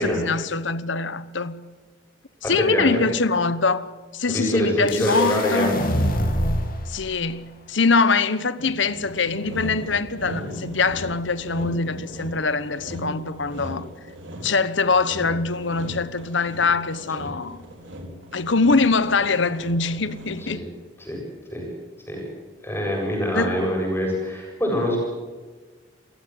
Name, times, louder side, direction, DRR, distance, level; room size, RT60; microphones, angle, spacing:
voice 1, 0.0-1.7 2.4-5.8 6.9-13.9 14.4-17.6 18.3-20.7 23.3-23.6, left 4 dB, 70° left, 1.1 m, -23 dB
voice 2, 2.7-3.0 4.3-5.7 20.5-20.6 21.0-21.2 21.5-21.6 22.1-22.2 22.6-25.0, equal, 10° left, 7.8 m, -24 dB
sound 1, 4.9-6.8, equal, 45° left, 3.0 m, -24 dB
Sawing, 8.6-20.6, equal, 70° right, 4.1 m, -37 dB
28.5 x 16.0 x 7.8 m
head